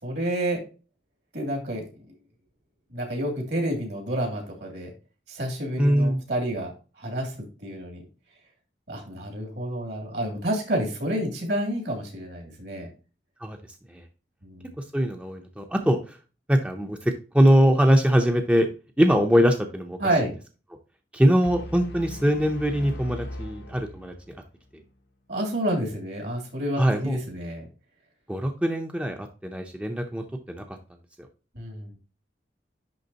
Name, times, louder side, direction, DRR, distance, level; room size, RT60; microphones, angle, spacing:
voice 1, 0.0-0.6 1.3-1.8 2.9-4.9 5.3-6.7 7.0-8.0 8.9-12.9 14.4-14.7 20.0-20.3 25.3-27.7 31.5-32.0, right 1 dB, 70° right, 1 dB, 2.6 m, -29 dB
voice 2, 5.8-6.2 13.4-13.6 13.9-14.0 14.8-16.2 16.5-18.7 19.0-20.0 21.1-24.1 24.7-24.8 26.8-27.2 28.3-30.8, equal, 5° right, 4 dB, 0.6 m, -22 dB
sound 1, 21.4-24.5, left 1 dB, 80° left, 0.9 m, -39 dB
10.5 x 3.5 x 2.8 m, 0.33 s
head